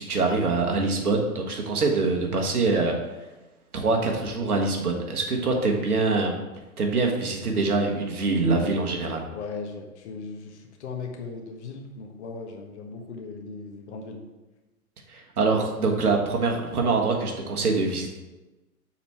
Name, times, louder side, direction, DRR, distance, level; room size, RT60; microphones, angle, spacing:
voice 1, 0.0-3.0 3.7-6.4 6.8-9.2 15.1-18.2, right 3 dB, 70° right, 1 dB, 1.6 m, -24 dB
voice 2, 9.3-14.2, left 4 dB, 50° left, 2 dB, 1.3 m, -38 dB
7.4 x 4.3 x 4.5 m, 1.1 s
figure-of-eight pair, 120°, 45 cm